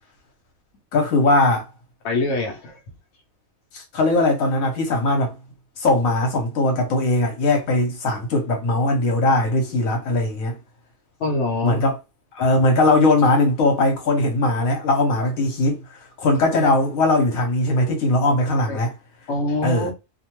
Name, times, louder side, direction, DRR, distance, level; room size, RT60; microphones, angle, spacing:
voice 1, 0.9-1.7 3.7-5.3 5.8-10.6 11.6-12.0 12.3-18.9 19.6-19.9, left 2 dB, 80° left, 1.2 m, -20 dB
voice 2, 2.0-2.8 11.2-11.8 18.7-18.8 19.3-19.9, left 2 dB, 60° left, 0.9 m, -24 dB
2.6 x 2.2 x 2.9 m
omnidirectional pair, 1.4 m